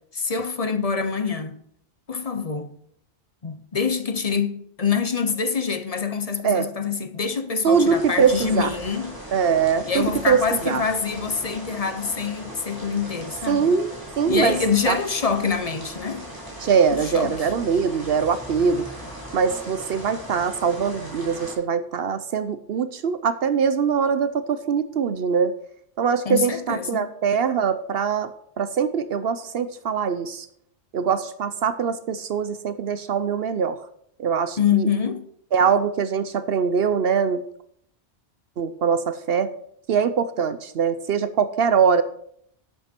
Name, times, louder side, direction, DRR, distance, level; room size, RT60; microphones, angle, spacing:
voice 1, 0.1-1.6 2.1-2.7 3.4-9.1 9.8-13.7 14.3-16.3 17.1-17.3 26.2-27.1 34.6-35.3, left 6 dB, 35° left, 0.8 m, -25 dB
voice 2, 7.6-8.7 9.3-10.8 13.5-13.9 14.2-14.6 14.9-15.0 16.6-18.9 19.3-25.5 26.0-30.5 30.9-33.8 34.2-34.9 35.5-37.4 38.6-39.5 39.9-42.0, right 6 dB, 65° right, 0.8 m, -22 dB
sound 1, 7.7-21.5, equal, 20° right, 3.7 m, -38 dB
11.0 x 8.9 x 4.4 m
omnidirectional pair, 1.2 m